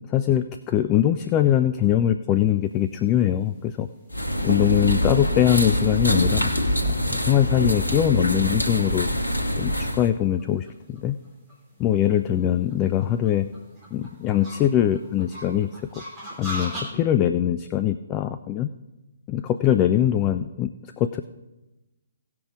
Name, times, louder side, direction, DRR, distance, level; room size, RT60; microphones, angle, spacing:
voice 1, 0.1-3.9 4.4-6.5 7.0-9.1 9.6-11.2 11.8-13.5 13.9-15.7 16.4-18.7 19.3-21.2, left 11 dB, 20° left, 9 dB, 0.3 m, -22 dB
sound 1, 2.9-16.8, equal, 15° right, 2.9 m, -42 dB
sound 2, 4.1-10.1, equal, 80° left, 1.1 m, -24 dB
17.0 x 6.0 x 4.8 m, 1.1 s
figure-of-eight pair, 130°, 0 cm